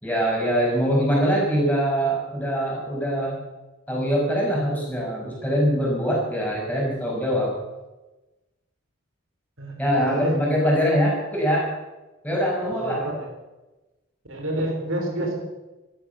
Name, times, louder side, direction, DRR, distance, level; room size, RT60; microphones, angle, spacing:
voice 1, 0.0-3.4 3.9-7.5 9.8-11.7 12.2-13.0, equal, 10° left, -3 dB, 5.6 m, -23 dB
voice 2, 9.6-10.4 10.6-10.9 12.7-13.3 14.3-15.4, right 1 dB, 75° right, 1 dB, 4.0 m, -29 dB
15.5 x 12.5 x 6.9 m, 1.1 s
head